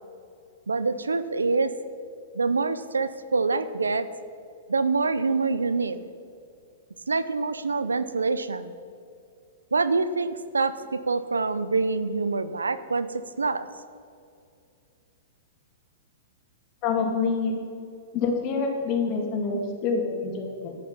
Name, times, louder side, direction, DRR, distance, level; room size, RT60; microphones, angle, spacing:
voice 1, 0.7-1.7 2.3-4.1 4.7-6.0 7.1-8.7 9.7-13.1 13.4-13.7, right 4 dB, 90° right, 13 dB, 0.6 m, -25 dB
voice 2, 16.8-17.5 18.1-20.8, left 4 dB, 40° left, 1 dB, 2.5 m, -26 dB
11.0 x 10.0 x 5.6 m, 2.4 s
hypercardioid pair, 115°, 0 cm